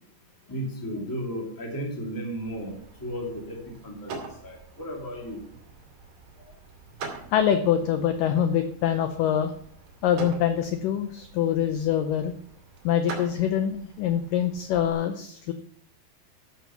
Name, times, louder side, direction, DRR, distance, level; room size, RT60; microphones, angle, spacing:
voice 1, 0.5-4.1 4.4-5.4, equal, 5° left, 0 dB, 1.8 m, -34 dB
sound 1, 2.4-14.9, right 4 dB, 70° right, 4.6 m, -44 dB
voice 2, 7.3-9.5 10.0-12.3 12.8-15.5, left 9 dB, 80° left, 8 dB, 1.9 m, -24 dB
13.5 x 7.1 x 5.8 m, 0.65 s
omnidirectional pair, 4.7 m